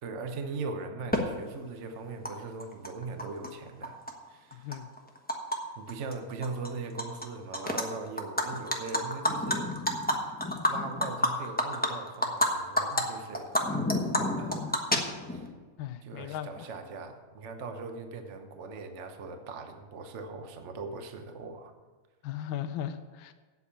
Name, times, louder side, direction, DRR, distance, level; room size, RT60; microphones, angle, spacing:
voice 1, 0.0-4.0 4.3-4.7 5.8-9.7 10.3-10.4 10.6-14.8 15.3-15.4 16.0-21.7, right 4 dB, 50° right, 6 dB, 0.9 m, -40 dB
Animal, 1.1-1.2 2.2-2.3 2.6-3.5 3.8-5.6 5.9-6.1 6.4-7.2 7.5-7.8 8.2-12.5 12.8-13.0 13.3-15.5, left 1 dB, 5° left, 0.7 m, -28 dB
voice 2, 4.5-4.9 15.8-16.7 22.2-23.3, left 10 dB, 75° left, 8 dB, 1.4 m, -37 dB
8.5 x 8.4 x 6.8 m, 1.4 s
omnidirectional pair, 2.3 m